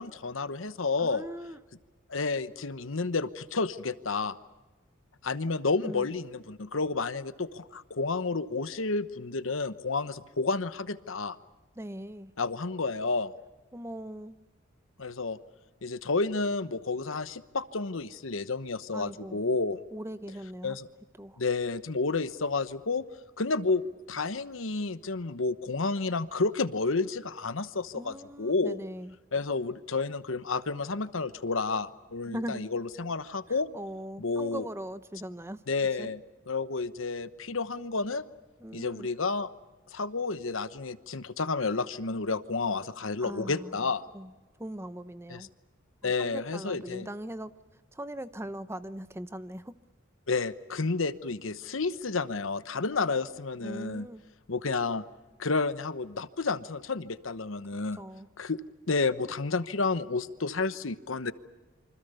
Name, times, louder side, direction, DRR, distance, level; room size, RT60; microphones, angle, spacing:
voice 1, 0.0-1.2 2.1-4.4 5.2-11.4 12.4-13.3 15.0-15.4 15.8-19.8 20.6-20.9 21.4-23.0 23.4-23.8 24.1-28.8 29.3-33.7 34.2-34.6 35.7-36.2 36.5-38.2 38.7-39.5 39.9-44.0 45.3-45.5 46.0-47.1 50.3-54.1 54.5-55.0 55.4-58.0 58.4-58.6 58.9-61.3, left 3 dB, 75° left, 1.1 m, -30 dB
voice 2, 1.0-1.6 5.8-6.1 11.8-12.3 13.7-14.4 18.9-19.4 19.9-20.8 21.2-21.4 27.9-29.2 32.3-32.6 33.5-35.6 35.9-36.1 38.6-39.1 43.2-45.5 46.0-49.8 53.6-54.2 57.9-58.3, right 1 dB, 10° right, 0.8 m, -40 dB
27.5 x 25.0 x 6.9 m
head